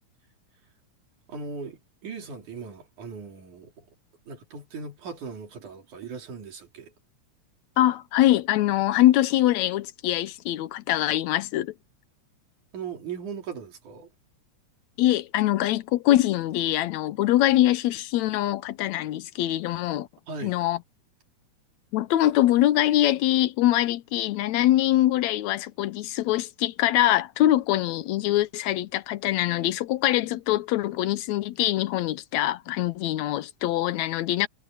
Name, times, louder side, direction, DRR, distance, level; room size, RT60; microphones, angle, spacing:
voice 1, 1.3-3.9 4.3-6.9 12.7-14.1 20.3-20.6, right 5 dB, 90° right, 4.7 m, -38 dB
voice 2, 7.8-11.7 15.0-20.1 20.4-20.8 21.9-34.5, left 14 dB, 75° left, 1.9 m, -23 dB
omnidirectional pair, 3.4 m